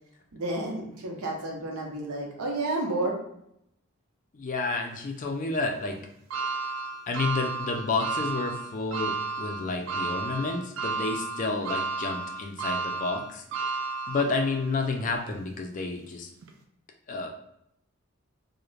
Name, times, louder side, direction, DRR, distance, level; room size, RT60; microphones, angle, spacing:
voice 1, 0.3-3.1, right 2 dB, 90° right, 0 dB, 0.7 m, -31 dB
voice 2, 4.3-6.0 7.1-13.4 14.1-16.3 17.1-17.3, left 3 dB, 35° left, 3 dB, 0.3 m, -30 dB
sound 1, 6.3-14.7 15.2-15.3 16.4-16.5, right 4 dB, 65° right, 0.3 m, -32 dB
2.4 x 2.1 x 3.0 m, 0.74 s
head